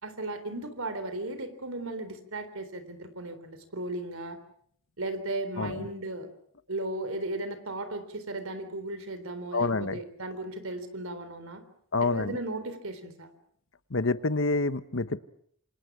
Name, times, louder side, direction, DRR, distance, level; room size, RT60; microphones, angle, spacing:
voice 1, 0.0-4.4 5.0-6.3 6.7-11.6 12.0-13.3, right 2 dB, 85° right, 11 dB, 3.8 m, -36 dB
voice 2, 9.5-10.0 11.9-12.3 13.9-15.2, left 3 dB, 65° left, 13 dB, 1.2 m, -27 dB
28.0 x 26.5 x 6.2 m, 0.64 s
head